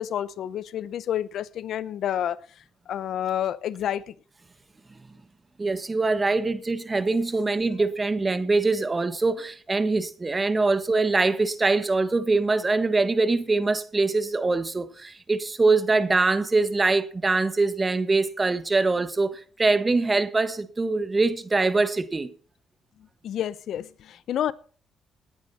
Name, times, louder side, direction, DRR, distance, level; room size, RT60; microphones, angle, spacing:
voice 1, 0.0-2.4 2.9-4.0 7.8-7.9 23.2-24.5, left 10 dB, 70° left, 0.8 m, -29 dB
voice 2, 5.6-22.3, right 3 dB, 25° right, 1.6 m, -23 dB
19.0 x 9.7 x 4.3 m
cardioid pair, 90°, 0 cm